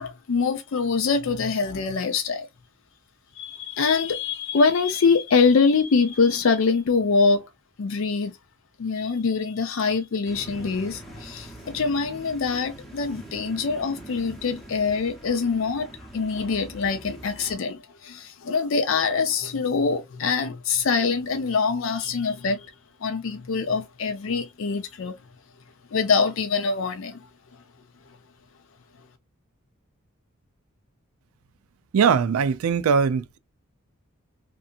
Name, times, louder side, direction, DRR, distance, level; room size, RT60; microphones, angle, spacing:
voice 1, 0.0-2.5 3.3-7.5 7.8-8.3 8.8-22.7 23.0-25.1 25.9-27.3, left 4 dB, 65° left, 0.4 m, -24 dB
sound 1, 10.2-17.5, right 1 dB, ahead, 0.7 m, -43 dB
voice 2, 31.9-33.4, right 6 dB, 90° right, 0.4 m, -21 dB
2.7 x 2.5 x 2.3 m
head